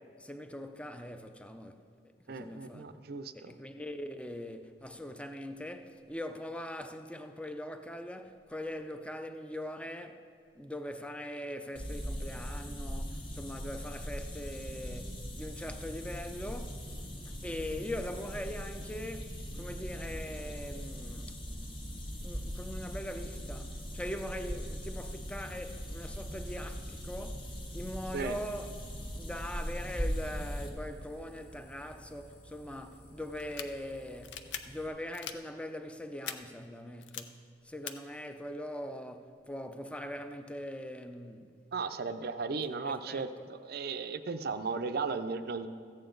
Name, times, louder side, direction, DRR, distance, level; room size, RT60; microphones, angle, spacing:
voice 1, 0.2-1.9 2.3-2.9 3.3-10.2 10.6-16.8 17.3-21.4 22.2-28.7 29.2-41.5 42.8-43.5, left 1 dB, 5° left, 0.5 m, -42 dB
voice 2, 2.3-3.5 28.1-28.4 41.7-45.7, right 4 dB, 60° right, 0.5 m, -36 dB
sound 1, 11.7-30.7, equal, 30° left, 1.2 m, -40 dB
sound 2, 15.6-34.9, equal, 60° left, 1.8 m, -58 dB
sound 3, 33.4-33.7 34.2-34.6 35.1-35.3 36.2-36.3 37.0-37.2 37.9-38.0, left 9 dB, 80° left, 0.5 m, -39 dB
14.0 x 8.8 x 3.8 m
head